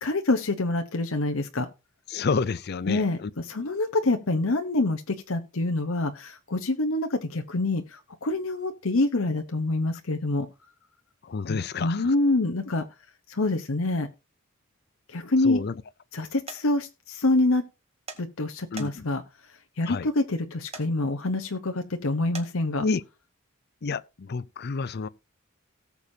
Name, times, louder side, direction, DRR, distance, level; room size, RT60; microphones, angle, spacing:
voice 1, 0.0-1.7 2.9-10.5 11.5-12.8 13.3-14.1 15.1-15.6 16.1-17.6 18.2-19.2 19.8-22.8, left 2 dB, 70° left, 0.9 m, -26 dB
voice 2, 2.1-3.3 11.2-12.1 15.4-15.7 18.7-19.1 19.9-20.1 22.8-23.0 23.8-25.1, left 4 dB, 50° left, 0.5 m, -29 dB
sound 1, 16.5-16.6 18.1-18.2 18.8-19.2 20.7-20.9 22.3-22.5, right 4 dB, 30° right, 1.7 m, -39 dB
18.0 x 7.0 x 2.8 m
head